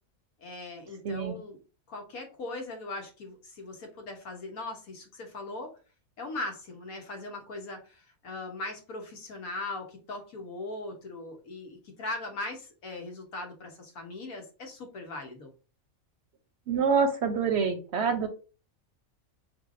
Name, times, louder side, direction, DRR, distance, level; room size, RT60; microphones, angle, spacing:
voice 1, 0.4-1.6 1.9-5.7 6.2-15.5, left 2 dB, 85° left, 2 dB, 1.5 m, -39 dB
voice 2, 1.0-1.3 16.7-18.3, right 5 dB, 60° right, 7 dB, 0.8 m, -26 dB
4.8 x 3.3 x 2.5 m, 0.35 s
omnidirectional pair, 1.5 m